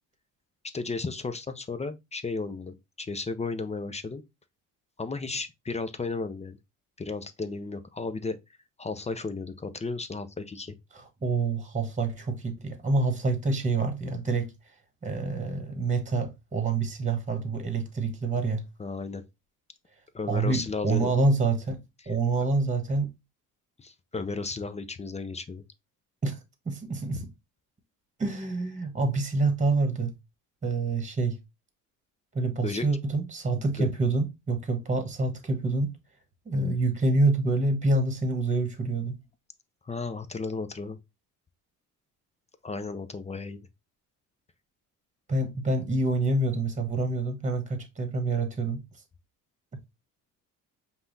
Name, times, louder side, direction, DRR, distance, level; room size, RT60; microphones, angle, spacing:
voice 1, 0.7-4.2 5.0-6.6 7.0-8.4 8.8-10.8 18.8-19.2 20.1-21.1 23.8-25.6 32.6-32.9 33.8-33.9 39.8-41.0 42.6-43.6, left 3 dB, 20° left, 0.5 m, -34 dB
voice 2, 10.9-14.5 15.0-18.6 20.3-21.8 22.1-23.1 26.2-26.4 26.7-27.2 28.2-30.1 30.6-31.4 32.3-35.9 36.4-39.2 45.3-48.8, right 3 dB, 20° right, 1.2 m, -27 dB
5.5 x 2.3 x 3.9 m
cardioid pair, 95°, 36 cm